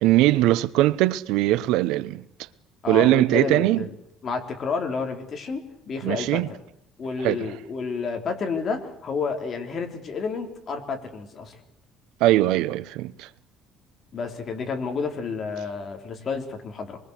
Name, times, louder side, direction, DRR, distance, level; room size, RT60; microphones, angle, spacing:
voice 1, 0.0-2.2 2.9-3.9 6.0-6.5 7.2-7.5 12.2-13.3, right 16 dB, 90° right, 0.9 m, -21 dB
voice 2, 2.8-3.9 4.2-6.4 7.0-11.6 14.1-17.0, left 5 dB, 35° left, 3.7 m, -30 dB
26.0 x 23.0 x 8.2 m
cardioid pair, 160°, 0 cm